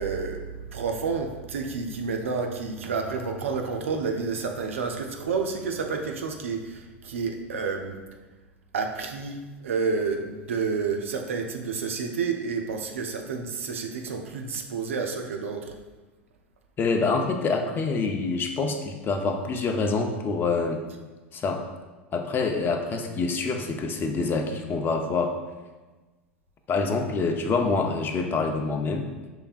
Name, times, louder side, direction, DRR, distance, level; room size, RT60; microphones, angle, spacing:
voice 1, 0.0-8.0 8.7-15.7, right 5 dB, 80° right, 4 dB, 0.5 m, -30 dB
voice 2, 16.8-20.8 21.3-21.6 22.1-25.3 26.7-29.1, left 4 dB, 30° left, 5 dB, 0.6 m, -26 dB
5.7 x 3.3 x 2.4 m, 1.2 s
hypercardioid pair, 90°, 7 cm